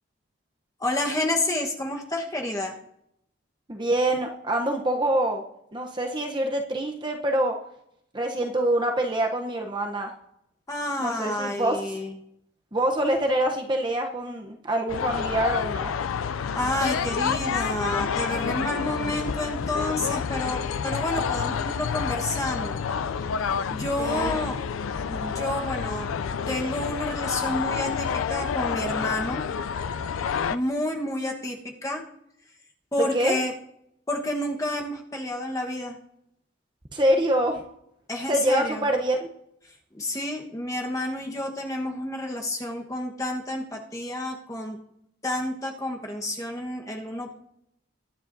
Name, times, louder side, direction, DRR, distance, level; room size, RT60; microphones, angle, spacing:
voice 1, 0.8-2.7 10.7-12.1 16.5-22.8 23.3-24.6 25.1-26.1 26.5-29.4 30.5-32.0 32.9-33.5 34.1-36.0 38.1-38.8 39.9-44.8 45.2-47.4, left 1 dB, 15° left, 1 dB, 1.2 m, -30 dB
voice 2, 3.7-5.4 5.7-7.6 8.1-10.1 11.0-11.9 12.7-15.9 24.0-24.4 33.0-33.4 36.9-37.6 38.3-39.3, right 1 dB, 25° right, 3 dB, 0.8 m, -25 dB
sound 1, 14.9-30.6, left 6 dB, 90° left, 0.4 m, -29 dB
21.5 x 9.7 x 2.7 m, 0.77 s
head